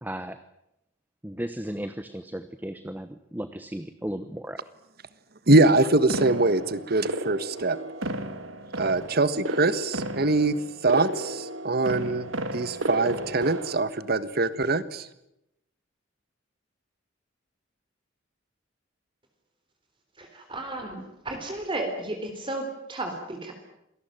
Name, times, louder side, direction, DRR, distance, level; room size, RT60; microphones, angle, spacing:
voice 1, 0.0-0.4 1.2-4.6, right 1 dB, 10° right, 11 dB, 1.0 m, -35 dB
voice 2, 5.5-7.8 8.7-10.6 10.8-15.1, right 2 dB, 50° right, 14 dB, 1.5 m, -23 dB
sound 1, 6.1-13.8, right 1 dB, 85° right, 2.4 m, -33 dB
voice 3, 20.2-23.5, right 2 dB, 25° right, 4 dB, 3.8 m, -33 dB
27.0 x 19.0 x 9.1 m, 0.83 s
head